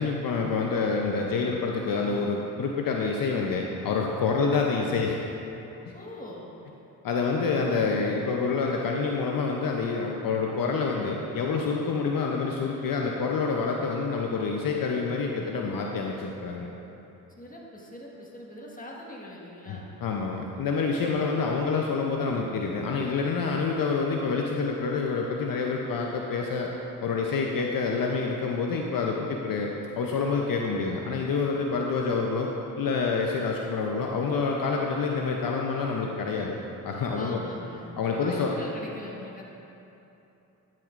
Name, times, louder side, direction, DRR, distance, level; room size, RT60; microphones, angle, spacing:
voice 1, 0.0-5.2 5.9-6.0 7.0-16.7 19.7-26.7 27.0-32.5 32.8-36.6 36.8-37.4 38.0-38.5, left 4 dB, 65° left, 0 dB, 0.7 m, -27 dB
voice 2, 5.9-6.6 17.4-19.9 37.1-39.4, left 1 dB, 20° left, -3 dB, 1.5 m, -42 dB
9.4 x 7.5 x 2.5 m, 2.9 s
supercardioid pair, 55°, 37 cm